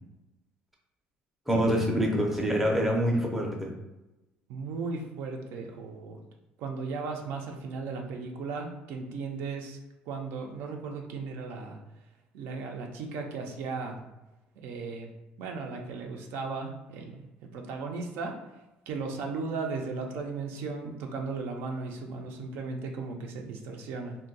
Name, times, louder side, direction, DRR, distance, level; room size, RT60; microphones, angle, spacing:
voice 1, 1.5-3.7, equal, 5° right, -1 dB, 0.5 m, -26 dB
voice 2, 4.5-6.2 6.6-9.8 10.1-11.8 12.3-14.0 14.6-15.1 15.4-18.3 18.9-24.2, right 4 dB, 75° right, 2 dB, 0.5 m, -36 dB
2.5 x 2.2 x 3.9 m, 1.0 s
cardioid pair, 145°, 4 cm